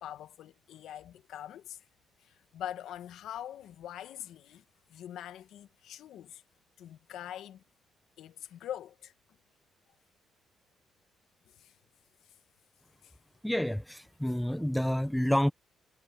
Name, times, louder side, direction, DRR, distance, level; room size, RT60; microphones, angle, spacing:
voice 1, 0.0-1.8 2.2-4.6 4.9-6.4 6.8-7.6 8.2-9.1 11.6-11.7 13.0-13.2, left 11 dB, 80° left, 1.5 m, -43 dB
voice 2, 13.4-15.5, equal, 5° left, 0.8 m, -29 dB
cardioid pair, 90°, 0 cm